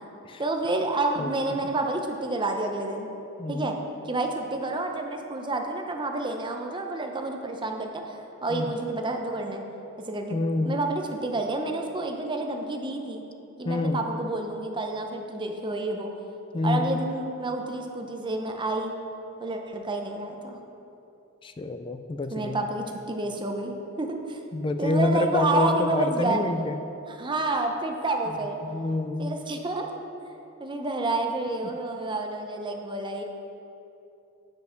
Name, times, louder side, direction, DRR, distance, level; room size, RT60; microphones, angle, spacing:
voice 1, 0.4-3.1 3.5-3.8 4.0-9.6 10.0-13.2 13.6-16.1 16.6-18.9 19.4-20.6 22.3-24.4 24.8-26.4 27.1-28.6 29.2-29.9 30.6-33.2, right 2 dB, 20° right, 3 dB, 0.6 m, -29 dB
voice 2, 3.4-3.8 8.5-8.7 10.3-10.8 13.7-14.0 16.5-16.9 21.4-22.6 24.5-26.8 28.6-29.3, left 2 dB, 25° left, 9 dB, 0.3 m, -27 dB
7.6 x 6.0 x 5.8 m, 2.9 s
head